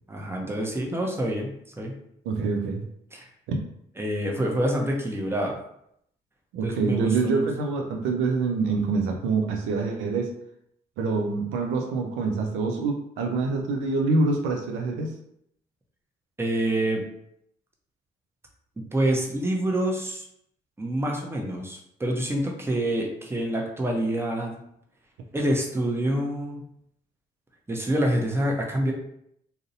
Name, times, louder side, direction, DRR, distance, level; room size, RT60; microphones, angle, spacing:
voice 1, 0.1-2.0 3.1-3.3 4.0-5.6 6.6-7.5 16.4-17.0 18.9-20.2 20.8-24.5 25.3-26.7 27.7-28.9, right 1 dB, 10° right, 0 dB, 0.7 m, -27 dB
voice 2, 2.3-2.8 3.5-3.6 6.5-10.3 11.0-15.1, right 3 dB, 80° right, 2 dB, 0.4 m, -26 dB
2.5 x 2.0 x 2.6 m, 0.73 s
supercardioid pair, 50°, 20 cm